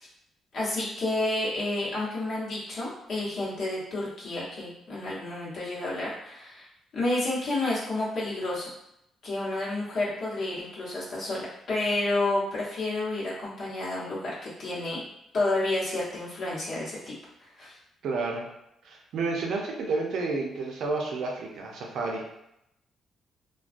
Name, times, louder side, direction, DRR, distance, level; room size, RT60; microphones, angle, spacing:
voice 1, 0.5-6.7 6.9-8.7 9.2-15.0 15.3-17.0 17.4-17.8, left 2 dB, 65° left, -7 dB, 1.0 m, -30 dB
voice 2, 18.0-18.5 18.8-22.2, right 3 dB, 75° right, 0 dB, 0.5 m, -30 dB
2.2 x 2.2 x 2.5 m, 0.83 s
cardioid pair, 85°, 0 cm